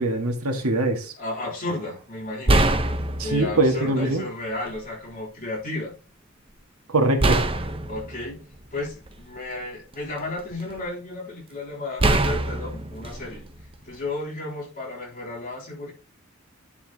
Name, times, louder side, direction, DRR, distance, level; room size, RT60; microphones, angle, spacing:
voice 1, 0.0-1.1 3.2-4.3 6.9-7.4, right 2 dB, 85° right, 1.8 m, -23 dB
voice 2, 1.2-2.7 3.2-5.9 7.9-8.4 8.7-13.4 13.8-15.9, left 2 dB, 40° left, 3.5 m, -33 dB
sound 1, 1.7-1.9 2.5-3.7 4.7-4.8 7.2-9.4 9.9-10.8 12.0-14.1, right 2 dB, 25° right, 0.9 m, -24 dB
10.5 x 5.7 x 2.9 m
head